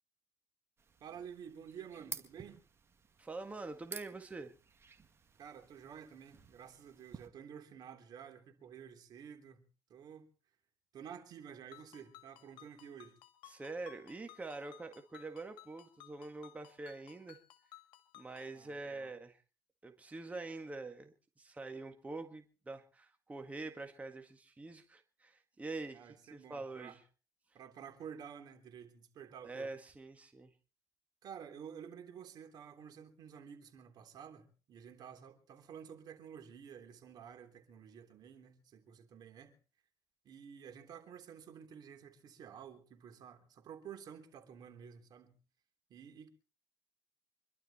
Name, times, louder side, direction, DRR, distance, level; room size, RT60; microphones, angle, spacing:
sound 1, 0.8-7.3, right 5 dB, 35° right, 2.1 m, -52 dB
voice 1, 1.0-2.6 5.4-9.6 9.9-10.3 10.9-13.2 18.5-19.1 25.9-27.0 27.5-29.7 31.2-39.5 40.2-45.4 45.9-46.3, right 8 dB, 60° right, 3.4 m, -51 dB
voice 2, 3.2-4.5 13.4-17.4 18.1-19.4 19.8-27.0 29.4-30.5, right 3 dB, 20° right, 1.8 m, -45 dB
Ringtone, 11.7-18.6, left 15 dB, 85° left, 1.7 m, -59 dB
25.5 x 12.0 x 4.3 m
cardioid pair, 100°, 8 cm